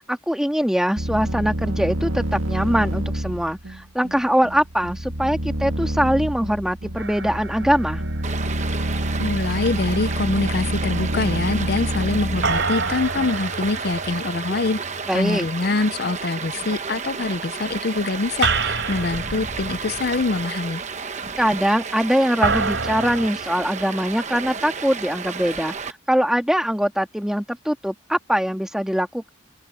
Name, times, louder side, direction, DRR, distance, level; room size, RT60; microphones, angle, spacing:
voice 1, 0.1-8.0 15.1-15.5 21.4-29.3, equal, 5° right, 2.0 m, -22 dB
sound 1, 1.0-13.4, right 1 dB, 80° right, 1.8 m, -27 dB
sound 2, 7.0-8.7 12.4-15.7 18.4-20.7 22.4-23.3, right 4 dB, 60° right, 5.1 m, -28 dB
Stream, 8.2-25.9, right 5 dB, 35° right, 1.0 m, -32 dB
voice 2, 9.2-14.8 15.1-20.8, left 3 dB, 50° left, 0.6 m, -24 dB
open air
head